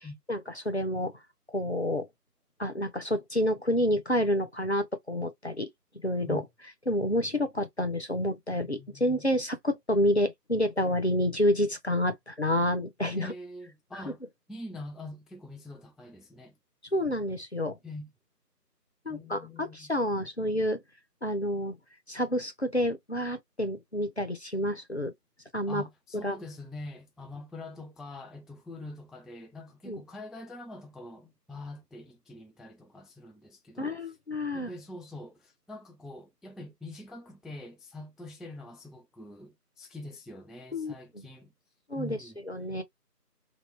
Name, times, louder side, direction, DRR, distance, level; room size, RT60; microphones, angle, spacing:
voice 1, 0.3-1.1 1.5-2.1 2.6-5.7 6.0-6.4 6.9-13.3 16.9-17.8 19.1-20.8 21.2-21.8 22.1-25.1 25.5-25.8 26.2-26.4 29.9-30.0 33.8-34.7 40.7-41.2 41.9-42.2 42.5-42.8, left 1 dB, 45° left, 0.6 m, -29 dB
voice 2, 8.6-9.3 13.1-14.2 14.5-16.6 17.8-18.1 19.1-19.9 25.7-34.2 34.5-41.5 42.0-42.4, left 2 dB, ahead, 0.4 m, -44 dB
3.0 x 2.8 x 3.1 m
figure-of-eight pair, 175°, 49 cm